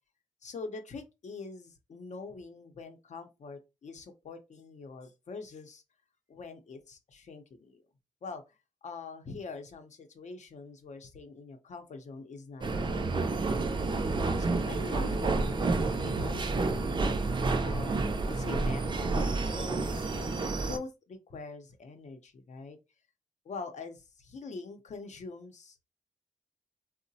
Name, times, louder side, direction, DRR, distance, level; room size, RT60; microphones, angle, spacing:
voice 1, 0.4-5.8 6.3-7.8 8.2-13.7 14.4-15.8 16.0-17.1 17.6-18.0 18.3-22.8 23.4-25.8, left 4 dB, 55° left, 0.6 m, -44 dB
sound 1, 12.6-20.8, right 3 dB, 35° right, 0.4 m, -30 dB
3.8 x 2.1 x 2.7 m
wide cardioid pair, 135°, 14 cm